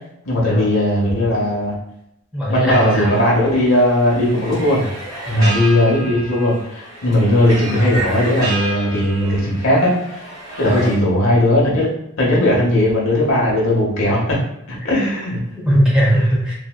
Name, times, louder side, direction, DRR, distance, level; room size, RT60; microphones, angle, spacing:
voice 1, 0.3-1.7 2.5-4.9 5.3-10.2 10.6-14.4 14.7-15.4, left 1 dB, 85° left, -4 dB, 0.8 m, -17 dB
voice 2, 2.3-3.2 5.3-5.6 7.7-7.9 10.6-10.9 15.6-16.5, equal, 5° right, -6 dB, 0.7 m, -18 dB
sound 1, 2.7-10.9, right 2 dB, 20° right, 1.0 m, -31 dB
2.6 x 2.1 x 2.2 m, 0.80 s
head